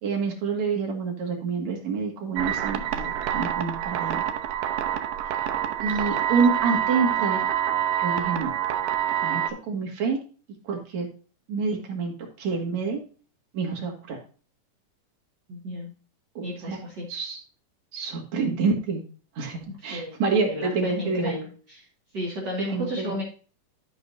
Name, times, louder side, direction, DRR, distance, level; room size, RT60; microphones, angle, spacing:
voice 1, 0.0-4.2 5.8-7.5 8.0-8.5 9.2-10.2 10.6-11.1 11.5-13.0 13.5-14.2 16.3-16.8 17.1-17.4 17.9-19.0 19.3-21.4 22.7-23.2, right 5 dB, 60° right, 1 dB, 3.2 m, -27 dB
sound 1, 2.4-9.5, right 10 dB, 80° right, 2.4 m, -27 dB
voice 2, 15.5-15.9 16.4-17.0 19.9-20.2 20.4-21.5 22.1-23.2, left 1 dB, 35° right, -2 dB, 2.6 m, -32 dB
13.0 x 5.9 x 2.7 m, 0.38 s
omnidirectional pair, 3.7 m